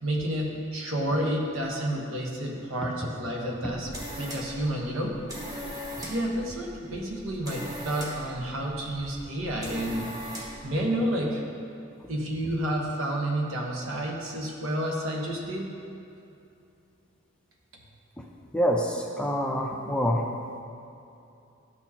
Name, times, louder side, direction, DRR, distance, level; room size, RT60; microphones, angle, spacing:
voice 1, 0.0-3.9 4.2-5.2 6.0-11.4 12.1-15.7 17.7-17.8, right 1 dB, 75° right, -1 dB, 1.1 m, -30 dB
sound 1, 3.5-10.7, equal, 20° right, 1.0 m, -40 dB
voice 2, 18.5-20.2, equal, 5° left, 0 dB, 0.5 m, -26 dB
12.5 x 4.4 x 2.9 m, 2.7 s
head